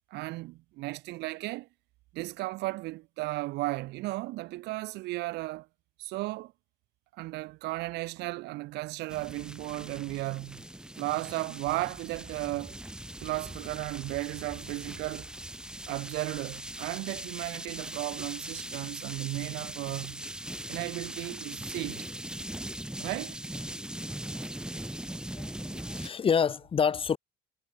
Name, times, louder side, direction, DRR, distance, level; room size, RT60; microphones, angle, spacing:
voice 1, 0.1-1.7 2.1-5.7 6.0-6.5 7.1-10.6 11.0-12.8 13.2-15.3 15.9-20.2 20.7-22.1 23.0-23.4, right 20 dB, 90° right, 1.7 m, -35 dB
sound 1, 9.1-26.1, right 1 dB, 5° right, 6.3 m, -40 dB
voice 2, 25.3-27.2, left 6 dB, 30° left, 0.8 m, -28 dB
cardioid pair, 110°, 17 cm